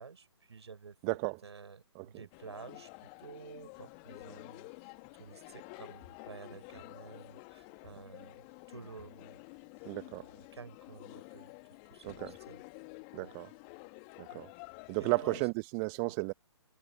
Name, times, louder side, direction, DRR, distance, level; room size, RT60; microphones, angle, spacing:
voice 1, 0.0-9.4 9.8-11.5 11.9-12.6 13.2-13.3 14.3-14.4 15.0-15.5 16.0-16.2, right 5 dB, 65° right, 5.5 m, -51 dB
voice 2, 1.0-1.4 1.9-2.1 9.9-10.2 12.0-12.4 13.1-13.5 14.2-14.5 14.9-16.3, right 37 dB, 20° right, 1.2 m, -33 dB
sound 1, 2.3-15.5, left 37 dB, 25° left, 2.1 m, -50 dB
figure-of-eight pair, 135°, 16 cm